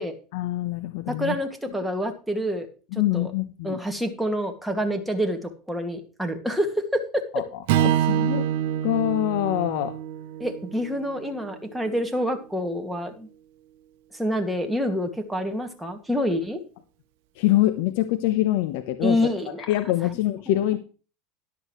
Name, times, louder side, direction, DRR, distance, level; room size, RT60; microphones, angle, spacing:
voice 1, 0.3-1.3 2.9-3.8 7.3-7.4 7.8-8.4 8.8-10.0 17.4-19.2 19.7-20.8, left 14 dB, 70° left, 10 dB, 0.9 m, -24 dB
voice 2, 1.1-2.7 2.9-3.3 3.6-7.0 10.4-13.3 14.1-16.6 19.0-19.7, equal, 5° right, 3 dB, 2.1 m, -27 dB
Strum, 7.7-12.0, right 11 dB, 70° right, 0.9 m, -27 dB
13.0 x 11.0 x 3.2 m, 0.37 s
supercardioid pair, 105°, 0 cm